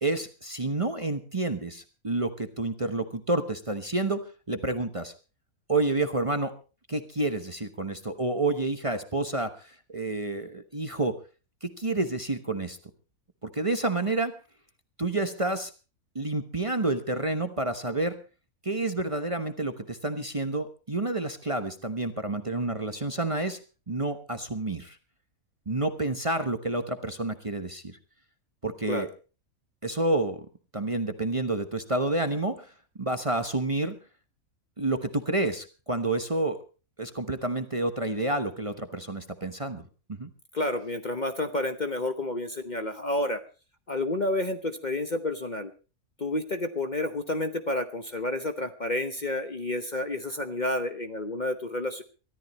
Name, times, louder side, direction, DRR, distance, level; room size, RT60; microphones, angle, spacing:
voice 1, 0.0-5.1 5.7-6.5 6.9-11.1 11.6-12.8 13.4-14.3 15.0-15.7 16.1-18.2 18.6-23.6 23.9-25.0 25.7-28.0 28.6-29.1 29.8-30.4 30.7-32.7 33.0-33.9 34.8-36.6 37.0-39.8 40.1-40.3, right 2 dB, 25° right, 7 dB, 1.0 m, -29 dB
voice 2, 40.5-43.4 43.9-45.7 46.2-52.0, left 2 dB, 35° left, 8 dB, 1.0 m, -30 dB
23.5 x 13.5 x 3.1 m, 0.34 s
omnidirectional pair, 1.5 m